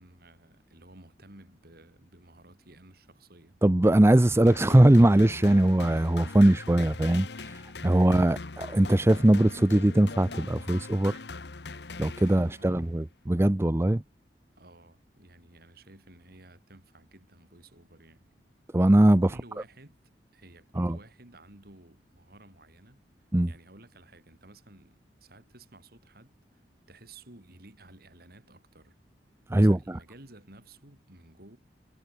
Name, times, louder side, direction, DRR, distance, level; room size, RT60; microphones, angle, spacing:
voice 1, 0.0-3.6 12.3-12.9 14.6-18.3 19.2-20.0 20.3-23.0 23.5-29.0 29.6-31.6, right 2 dB, 60° right, 4.3 m, -54 dB
voice 2, 3.6-11.2 12.0-14.0 18.7-19.3 20.8-21.0 23.3-23.5 29.5-30.0, right 1 dB, 15° right, 0.5 m, -21 dB
sound 1, 4.5-12.8, left 3 dB, 70° left, 1.2 m, -41 dB
head